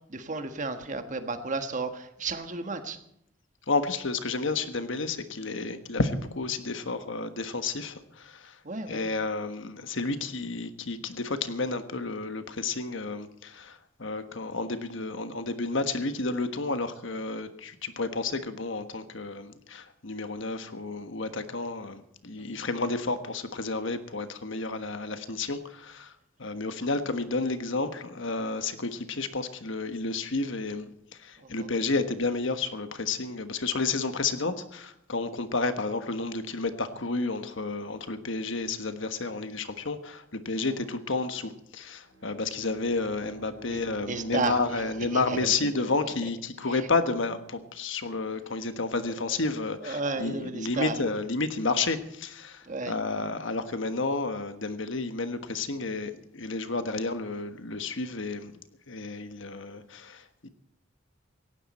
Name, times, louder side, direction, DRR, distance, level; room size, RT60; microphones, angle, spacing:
voice 1, 0.1-3.0 8.6-9.1 22.4-22.6 31.4-31.7 43.7-43.8 44.1-44.6 45.1-46.0 46.7-46.8 49.1-49.2 49.8-51.0 52.6-52.9, right 3 dB, 40° right, 8 dB, 1.5 m, -33 dB
voice 2, 3.7-8.6 8.9-26.1 26.4-30.9 31.2-58.5 58.9-60.5, left 3 dB, 65° left, 9 dB, 1.3 m, -31 dB
Bowed string instrument, 42.0-46.6, right 1 dB, 65° right, 2.5 m, -50 dB
18.0 x 16.0 x 4.3 m, 0.76 s
head